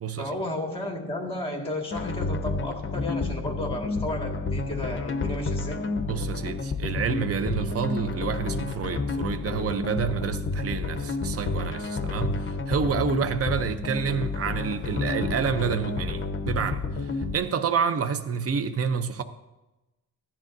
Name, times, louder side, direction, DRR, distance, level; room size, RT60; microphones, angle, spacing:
voice 1, 0.2-5.9, left 1 dB, 15° left, 1.9 m, -33 dB
sound 1, 1.9-17.3, left 3 dB, 30° left, 0.9 m, -30 dB
voice 2, 6.1-19.2, right 6 dB, 40° right, 0.6 m, -28 dB
16.0 x 10.5 x 2.6 m
wide cardioid pair, 120°, 38 cm